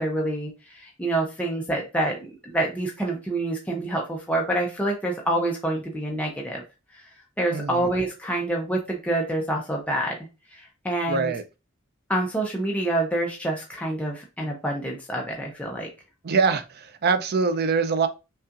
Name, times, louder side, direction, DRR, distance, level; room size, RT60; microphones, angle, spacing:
voice 1, 0.0-6.6 6.9-7.0 7.4-10.2 10.5-11.3 12.1-15.9, right 1 dB, 5° left, 0.6 m, -27 dB
voice 2, 7.5-7.9 11.1-11.4 16.2-18.1, right 4 dB, 50° right, 0.5 m, -23 dB
5.4 x 2.4 x 2.5 m
head